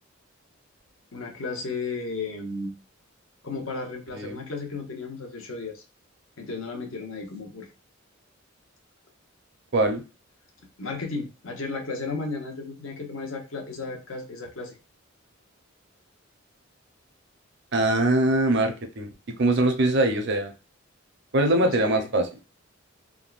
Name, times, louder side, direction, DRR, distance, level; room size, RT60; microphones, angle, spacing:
voice 1, 1.1-2.7 3.4-5.8 6.4-7.7 10.8-14.8 19.6-19.7 21.6-22.1, left 3 dB, 70° left, 1 dB, 0.9 m, -34 dB
voice 2, 9.7-10.0 17.7-19.1 19.4-20.5 21.3-22.3, right 1 dB, 55° right, 5 dB, 0.6 m, -22 dB
3.6 x 2.2 x 2.4 m, 0.31 s
head